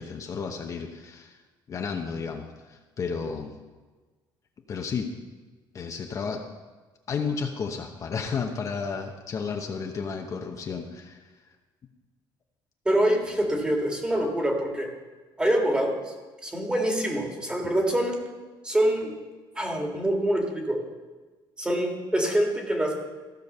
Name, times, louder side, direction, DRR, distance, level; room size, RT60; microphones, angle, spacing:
voice 1, 0.0-1.4 1.7-3.5 4.7-5.1 5.7-6.4 7.1-11.2, left 5 dB, 40° left, 3 dB, 0.9 m, -32 dB
voice 2, 12.9-14.9 15.4-16.1 16.4-18.2 18.6-19.1 19.6-20.8 21.6-22.9, right 1 dB, 10° right, 1 dB, 1.9 m, -25 dB
15.0 x 5.2 x 6.6 m, 1.3 s
cardioid pair, 140°, 9 cm